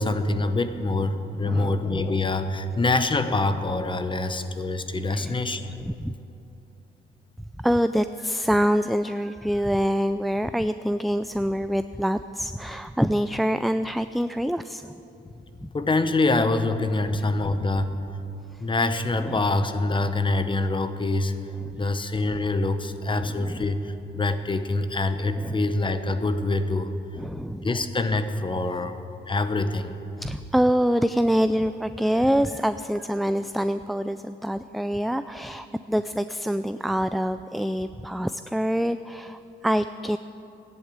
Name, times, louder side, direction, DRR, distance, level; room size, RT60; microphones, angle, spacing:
voice 1, 0.0-5.7 15.3-15.4 15.7-17.9 18.6-21.3 21.8-26.9 27.6-29.9, left 2 dB, 25° left, 10 dB, 1.1 m, -25 dB
voice 2, 1.4-1.8 5.1-5.4 5.8-6.1 7.6-15.0 15.6-15.7 17.0-17.1 18.5-18.6 19.2-19.3 21.7-21.8 23.2-23.6 25.4-25.6 27.2-27.7 30.2-40.2, equal, ahead, 11 dB, 0.3 m, -25 dB
14.5 x 11.0 x 8.6 m, 2.8 s
cardioid pair, 90°, 20 cm